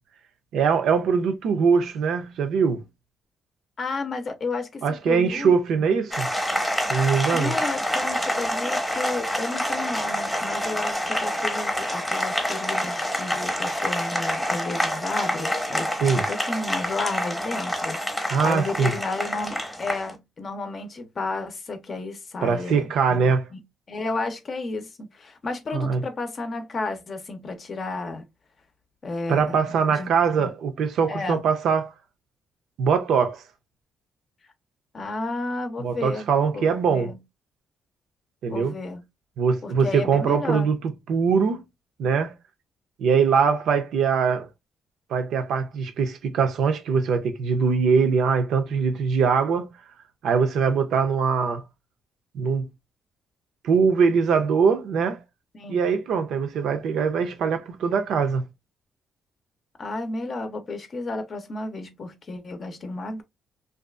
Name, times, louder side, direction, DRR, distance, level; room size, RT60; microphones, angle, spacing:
voice 1, 0.5-2.8 4.8-6.3 6.9-7.5 16.0-16.2 18.3-18.9 22.4-23.5 25.7-26.0 29.3-31.9 32.8-33.4 35.8-37.1 38.4-38.7 39.4-40.8 41.1-41.6 42.0-42.3 43.0-44.5 45.1-49.7 50.2-51.6 52.3-52.6 53.6-55.2 55.7-58.4, right 6 dB, 75° right, 0.5 m, -22 dB
voice 2, 3.8-5.9 7.3-28.3 29.0-30.1 30.4-30.5 31.1-31.4 34.9-37.2 38.5-39.0 39.6-40.7 55.5-55.8 59.8-63.2, left 3 dB, 45° left, 0.6 m, -32 dB
Applause, 6.1-20.1, equal, 5° left, 0.8 m, -27 dB
2.5 x 2.3 x 2.3 m
cardioid pair, 90°, 0 cm